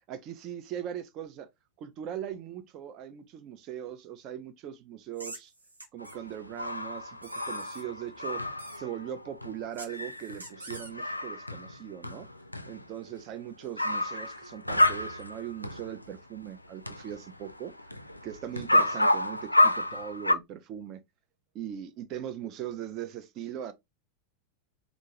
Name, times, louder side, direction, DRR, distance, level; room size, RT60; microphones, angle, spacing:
voice 1, 0.1-1.5 1.8-5.5 5.9-8.4 8.7-12.3 12.7-17.7 18.2-21.0 21.5-23.7, right 10 dB, 35° right, 0.5 m, -40 dB
sound 1, 5.1-6.2 7.2-7.8 8.6-8.8 9.7-10.9, right 2 dB, 80° right, 0.9 m, -45 dB
sound 2, 6.0-16.2 16.4-20.3, left 1 dB, 85° left, 0.3 m, -30 dB
3.6 x 2.5 x 2.9 m
figure-of-eight pair, 90°, 0 cm